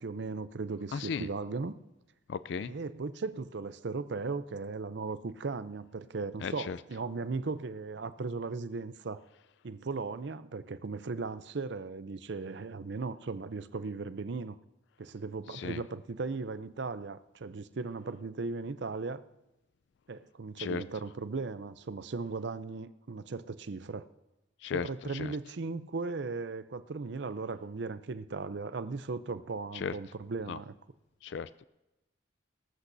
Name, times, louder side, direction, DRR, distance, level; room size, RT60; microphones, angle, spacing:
voice 1, 0.0-1.7 2.6-9.2 9.6-14.6 15.0-19.2 20.1-24.1 24.7-30.7, right 4 dB, 60° right, 13 dB, 0.5 m, -37 dB
voice 2, 0.9-1.3 2.3-2.7 6.4-6.8 15.5-15.8 20.6-20.8 24.6-25.3 29.7-29.9 30.5-30.6 31.2-31.6, left 6 dB, 65° left, 15 dB, 0.3 m, -36 dB
19.0 x 14.5 x 2.7 m, 1.0 s
head